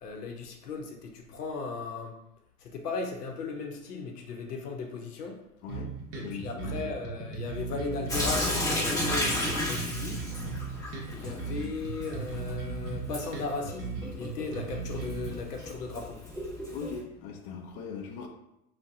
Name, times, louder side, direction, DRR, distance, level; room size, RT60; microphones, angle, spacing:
voice 1, 0.0-2.1 2.6-5.4 6.1-10.2 11.1-16.2, left 4 dB, 80° left, 3 dB, 0.7 m, -37 dB
voice 2, 5.6-5.9 6.2-6.8 16.7-18.3, left 5 dB, 40° left, 3 dB, 0.4 m, -39 dB
sound 1, 5.7-15.3, right 5 dB, 30° right, 0.8 m, -37 dB
Sink (filling or washing) / Drip, 8.1-17.0, left 1 dB, 10° left, 0.8 m, -34 dB
2.5 x 2.2 x 3.5 m, 0.84 s
hypercardioid pair, 100°, 46 cm